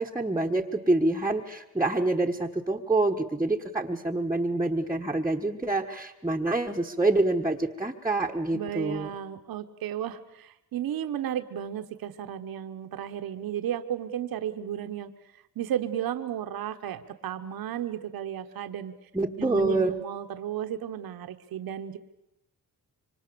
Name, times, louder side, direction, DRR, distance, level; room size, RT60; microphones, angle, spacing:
voice 1, 0.0-9.1 19.1-19.9, right 2 dB, 10° right, -2 dB, 1.2 m, -26 dB
voice 2, 8.5-15.1 15.5-18.9 19.4-22.0, right 10 dB, 75° right, 8 dB, 1.3 m, -34 dB
26.5 x 24.5 x 7.0 m, 0.93 s
cardioid pair, 110°, 36 cm